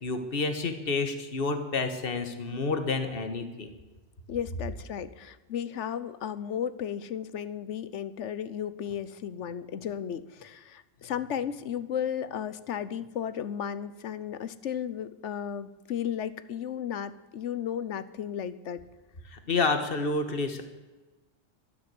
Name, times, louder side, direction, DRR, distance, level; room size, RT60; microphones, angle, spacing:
voice 1, 0.0-3.7 19.3-20.6, left 3 dB, 45° left, 7 dB, 1.7 m, -29 dB
voice 2, 4.3-18.8, left 9 dB, 70° left, 15 dB, 1.1 m, -34 dB
13.0 x 12.0 x 7.9 m, 1.2 s
omnidirectional pair, 1.3 m